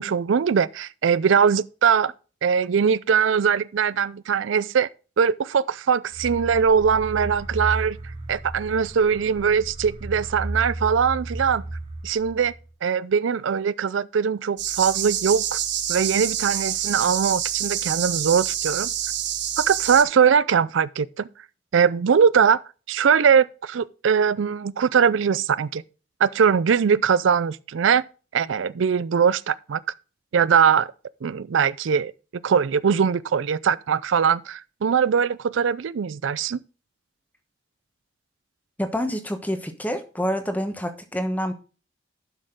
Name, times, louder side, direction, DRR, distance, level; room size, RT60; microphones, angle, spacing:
voice 1, 0.0-2.1 2.4-4.9 5.2-8.0 8.3-11.6 12.0-12.5 12.8-15.6 15.9-18.9 19.6-21.3 21.7-22.6 22.9-25.8 26.2-28.0 28.3-29.8 30.3-30.9 31.2-32.1 32.4-36.6, right 7 dB, 90° right, 0.4 m, -21 dB
sound 1, 6.1-12.7, right 2 dB, 30° right, 1.7 m, -34 dB
sound 2, 14.6-20.0, right 10 dB, 70° right, 1.2 m, -27 dB
voice 2, 38.8-41.5, equal, 10° left, 1.1 m, -27 dB
11.0 x 6.3 x 3.8 m
head